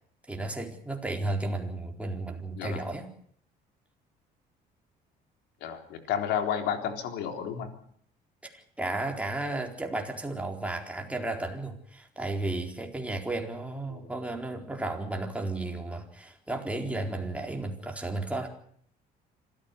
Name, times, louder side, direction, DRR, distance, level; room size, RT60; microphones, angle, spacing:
voice 1, 0.3-3.1 8.4-18.5, right 2 dB, 10° right, 2 dB, 4.2 m, -33 dB
voice 2, 5.6-7.7 13.9-14.1, left 8 dB, 85° left, 6 dB, 3.9 m, -31 dB
26.5 x 14.5 x 8.5 m, 0.64 s
cardioid pair, 110°, 17 cm